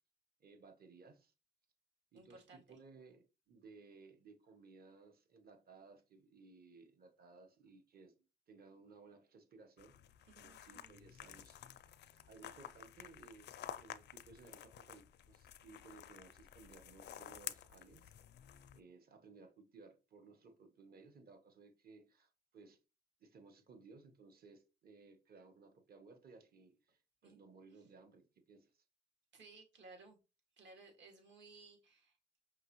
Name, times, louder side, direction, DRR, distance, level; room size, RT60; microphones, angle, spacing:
voice 1, 0.4-1.3 2.1-8.2 8.5-10.0 10.4-11.6 12.2-18.1 18.7-22.8 23.2-28.8, right 4 dB, 50° right, 1.0 m, -60 dB
voice 2, 2.1-2.8 10.2-10.9 12.1-12.2 27.2-27.4 29.3-30.2 30.6-32.4, right 3 dB, 70° right, 2.1 m, -59 dB
sound 1, 9.8-18.8, left 11 dB, 60° left, 0.4 m, -52 dB
5.5 x 2.7 x 3.0 m
cardioid pair, 90°, 20 cm